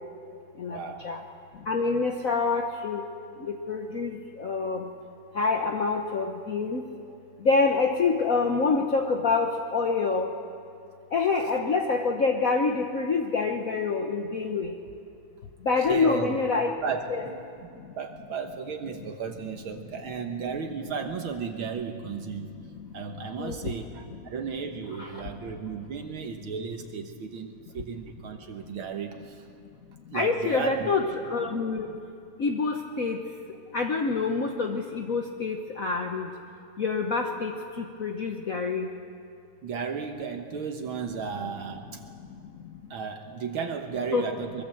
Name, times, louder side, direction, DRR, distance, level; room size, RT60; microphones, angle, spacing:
voice 1, 0.7-1.1 15.9-16.4 16.8-17.4 18.0-22.5 22.9-29.5 30.1-31.0 39.6-42.0 42.9-44.6, right 6 dB, 75° right, 4 dB, 2.0 m, -34 dB
voice 2, 1.7-3.0 3.5-4.1 4.4-4.8 5.4-6.8 7.4-10.3 11.1-14.7 15.7-16.7 17.1-17.2 23.4-23.5 25.0-25.1 30.1-31.0 31.3-31.9 32.4-33.2 33.7-36.3 36.8-37.5 38.0-38.9 44.1-44.3, left 4 dB, 50° left, 3 dB, 1.2 m, -26 dB
23.5 x 22.0 x 7.8 m, 2.5 s
omnidirectional pair, 2.3 m